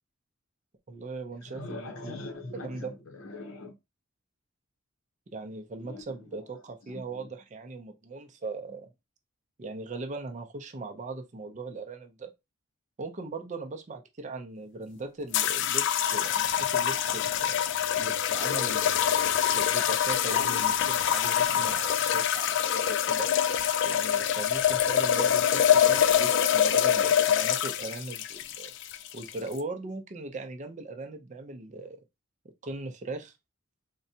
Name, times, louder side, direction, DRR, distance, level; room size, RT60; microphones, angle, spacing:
voice 1, 0.9-2.1 2.6-2.9 5.3-8.9 9.6-12.3 13.0-17.6 18.0-23.3 23.9-28.7 29.1-32.0 32.6-33.3, right 3 dB, 35° right, 0.5 m, -39 dB
voice 2, 1.4-3.8 5.8-6.4 6.9-7.3, left 2 dB, 90° left, 0.7 m, -42 dB
sound 1, 15.3-29.6, left 9 dB, 60° left, 0.3 m, -25 dB
3.8 x 2.2 x 2.7 m
head